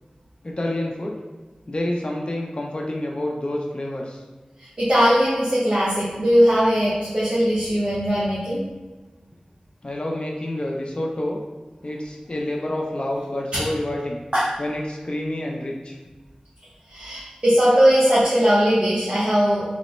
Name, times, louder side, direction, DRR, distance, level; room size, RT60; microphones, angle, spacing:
voice 1, 0.4-1.2 1.7-4.2 9.8-11.4 11.8-14.2 14.6-16.0, left 1 dB, 45° left, -1 dB, 0.4 m, -28 dB
voice 2, 4.8-8.6 13.5-13.6 14.3-14.5 16.9-19.6, equal, 45° right, -10 dB, 0.9 m, -19 dB
3.0 x 2.0 x 4.0 m, 1.2 s
wide cardioid pair, 55°, 2 cm